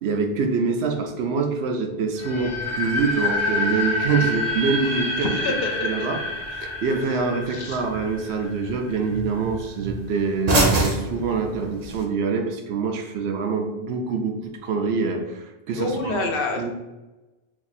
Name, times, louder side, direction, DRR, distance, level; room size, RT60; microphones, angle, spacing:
voice 1, 0.0-5.3 5.8-6.2 6.6-16.2 16.6-16.7, right 4 dB, 80° right, 4 dB, 0.8 m, -25 dB
sound 1, 2.2-9.0, left 2 dB, 20° left, 0.6 m, -28 dB
sound 2, 4.0-12.0, right 1 dB, 45° right, 0.7 m, -30 dB
voice 2, 5.2-5.7 6.0-6.1 7.5-7.8 15.7-16.7, left 3 dB, 65° left, 3 dB, 0.7 m, -27 dB
2.7 x 2.6 x 4.0 m, 1.1 s
omnidirectional pair, 1.1 m